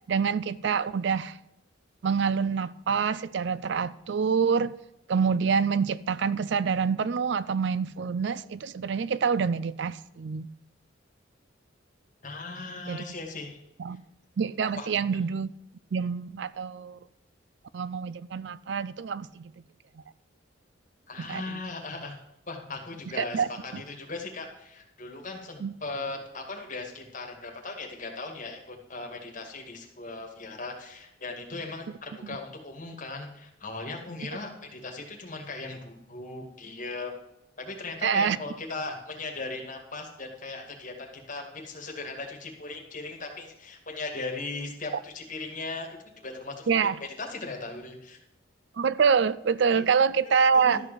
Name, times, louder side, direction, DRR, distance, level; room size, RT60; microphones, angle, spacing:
voice 1, 0.1-1.4 2.0-4.7 5.1-10.5 12.9-13.0 13.8-14.0 14.4-15.5 15.9-17.0 17.7-19.5 21.3-21.6 23.2-23.8 25.6-25.7 38.0-38.4 46.7-47.0 48.8-50.8, right 6 dB, 60° right, 0.4 m, -26 dB
voice 2, 12.2-13.6 14.8-14.9 21.1-22.2 22.5-37.2 37.6-45.9 46.2-46.9 47.2-48.2 49.7-49.9 50.5-50.8, left 3 dB, 40° left, 2.2 m, -38 dB
13.0 x 4.9 x 7.7 m
head